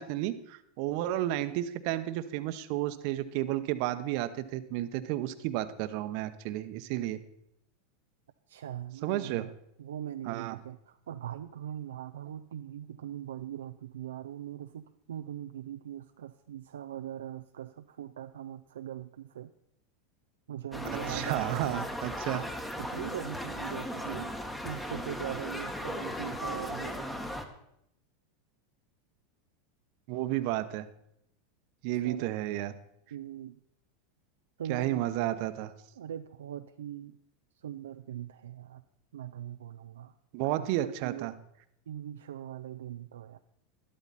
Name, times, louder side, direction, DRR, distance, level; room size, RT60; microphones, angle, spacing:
voice 1, 0.0-7.2 9.0-9.5 10.3-10.6 21.1-22.4 30.1-30.9 31.8-32.7 34.7-35.7 40.3-41.3, right 14 dB, 60° right, 11 dB, 0.9 m, -32 dB
voice 2, 8.5-9.5 9.8-19.5 20.5-21.9 22.8-24.3 24.6-27.1 32.0-32.3 33.1-33.6 34.6-35.1 36.0-37.2 37.6-38.8 39.1-40.2 40.4-41.3 41.9-43.4, right 10 dB, 85° right, 7 dB, 0.4 m, -41 dB
sound 1, 20.7-27.5, equal, 10° left, 1.5 m, -37 dB
12.5 x 12.0 x 4.1 m, 0.76 s
hypercardioid pair, 100°, 0 cm